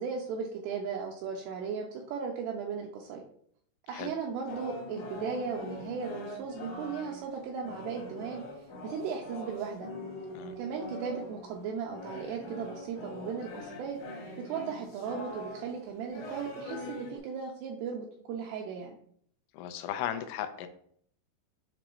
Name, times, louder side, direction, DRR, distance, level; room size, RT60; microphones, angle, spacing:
voice 1, 0.0-3.2 3.9-8.4 8.8-9.9 10.6-14.0 14.4-19.0, right 6 dB, 90° right, 0 dB, 2.4 m, -36 dB
sound 1, 4.5-17.2, left 1 dB, 65° left, 1.9 m, -43 dB
voice 2, 19.5-20.7, left 10 dB, 90° left, 8 dB, 3.2 m, -36 dB
7.7 x 3.1 x 4.5 m, 0.63 s
omnidirectional pair, 5.4 m